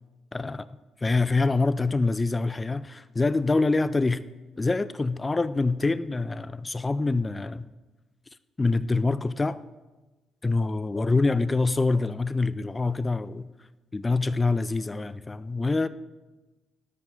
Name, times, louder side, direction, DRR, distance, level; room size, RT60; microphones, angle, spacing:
voice 1, 0.3-0.7 1.0-4.2 4.6-7.7 8.6-9.6 10.4-13.4 13.9-15.9, left 3 dB, 25° left, 16 dB, 0.5 m, -25 dB
13.0 x 12.0 x 3.9 m, 1.2 s
figure-of-eight pair, 45°, 0 cm